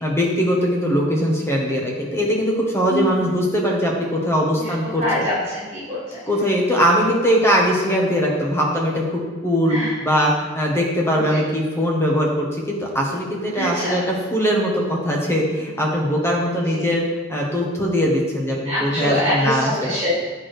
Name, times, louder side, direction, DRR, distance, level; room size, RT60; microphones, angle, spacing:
voice 1, 0.0-5.2 6.3-17.0 17.3-19.9, equal, 10° left, -2 dB, 1.0 m, -21 dB
voice 2, 2.9-3.3 4.6-4.7 5.0-6.2 9.7-10.0 11.1-11.4 13.5-14.0 16.6-16.9 18.6-20.2, equal, 25° right, -12 dB, 1.6 m, -25 dB
8.4 x 4.4 x 3.3 m, 1.4 s
head